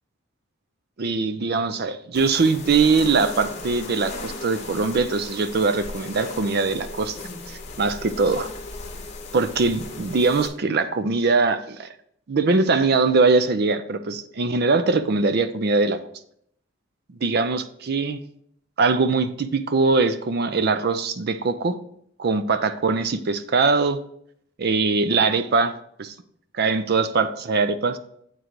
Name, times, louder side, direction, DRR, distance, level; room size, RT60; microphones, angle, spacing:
voice 1, 1.0-7.2 7.5-8.5 9.3-11.9 12.3-16.0 17.2-18.2 18.8-21.8 22.2-24.0 24.6-25.7 26.0-26.1 26.6-28.0, right 4 dB, 50° right, 11 dB, 0.4 m, -22 dB
sound 1, 2.1-10.5, left 3 dB, 30° left, 0.9 m, -36 dB
8.1 x 3.8 x 4.5 m, 0.70 s
head